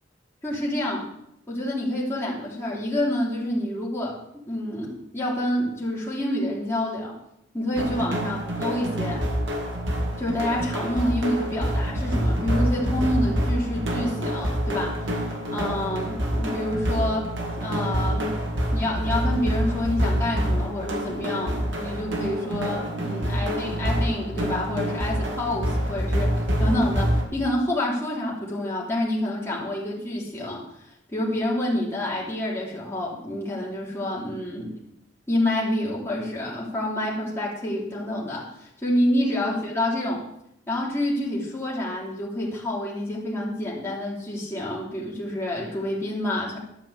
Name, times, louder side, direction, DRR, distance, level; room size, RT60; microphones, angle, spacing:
voice 1, 0.4-1.1 1.5-4.2 4.5-7.1 7.5-9.2 10.2-17.3 17.6-18.4 18.7-26.3 26.6-30.6 31.1-34.7 35.3-40.2 40.7-46.6, left 1 dB, 15° left, -5 dB, 3.1 m, -28 dB
sound 1, 7.8-27.2, equal, 75° right, 2.1 m, -26 dB
12.0 x 5.9 x 8.0 m, 0.79 s
head